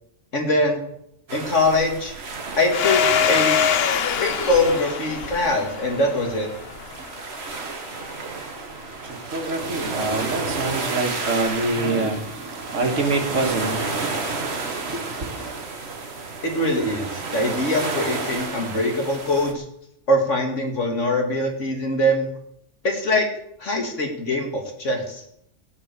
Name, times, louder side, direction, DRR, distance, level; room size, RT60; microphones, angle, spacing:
voice 1, 0.3-0.8 1.3-2.1 2.6-3.0 3.3-3.6 4.2-6.5 16.4-19.6 20.1-22.3 22.8-23.3 23.6-25.2, left 1 dB, 80° left, 2 dB, 2.8 m, -22 dB
sound 1, 1.3-19.5, right 4 dB, 60° right, 1.7 m, -32 dB
Domestic sounds home sounds, 2.7-7.1, left 7 dB, 60° left, 1.0 m, -23 dB
voice 2, 9.3-15.5, right 2 dB, 85° right, 3 dB, 2.3 m, -26 dB
16.0 x 5.8 x 8.3 m, 0.74 s
omnidirectional pair, 1.2 m